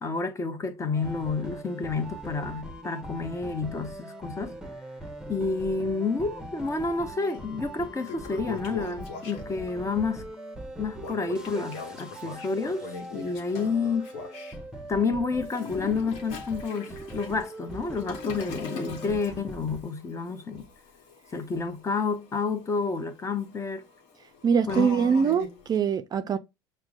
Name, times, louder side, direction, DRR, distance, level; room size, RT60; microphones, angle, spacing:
voice 1, 0.0-4.5 5.3-10.2 10.8-14.1 14.9-20.6 21.3-23.8 24.7-24.9, left 4 dB, 25° left, 0.8 m, -29 dB
sound 1, 0.9-19.9, right 1 dB, 5° right, 0.8 m, -41 dB
Toilet flush, 7.3-7.4 7.8-9.7 11.0-14.6 15.4-25.8, left 5 dB, 60° left, 1.0 m, -42 dB
voice 2, 24.4-26.4, right 6 dB, 35° right, 0.4 m, -23 dB
5.8 x 2.1 x 2.4 m
hypercardioid pair, 75°, 12 cm